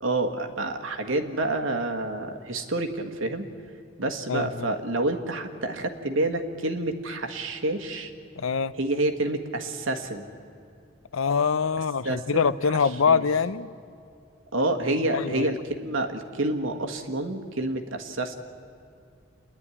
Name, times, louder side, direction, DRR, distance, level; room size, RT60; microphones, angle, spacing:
voice 1, 0.0-3.5 4.0-8.1 8.8-10.3 12.0-12.5 12.8-13.2 14.5-18.3, right 2 dB, 80° right, 4 dB, 1.6 m, -28 dB
voice 2, 4.3-4.7 8.3-8.7 11.1-13.7 15.1-15.5, left 5 dB, 90° left, 16 dB, 0.6 m, -24 dB
28.0 x 11.0 x 9.8 m, 2.5 s
head